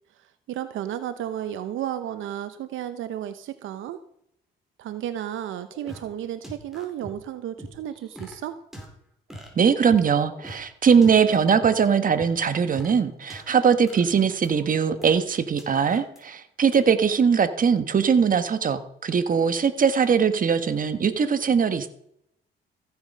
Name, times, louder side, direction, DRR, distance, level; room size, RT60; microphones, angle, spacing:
voice 1, 0.2-4.0 4.8-8.6, right 11 dB, 80° right, 11 dB, 0.8 m, -33 dB
sound 1, 5.4-6.0 6.4-7.1 7.6-8.4 8.7-8.9 9.3-10.1 10.3-10.6 11.0-11.7 12.2-13.4 13.9-15.1 15.6-16.2 16.7-16.8, equal, ahead, 4.4 m, -42 dB
voice 2, 9.5-21.9, right 6 dB, 45° right, 10 dB, 1.4 m, -21 dB
15.0 x 8.6 x 5.5 m, 0.74 s
cardioid pair, 90°, 20 cm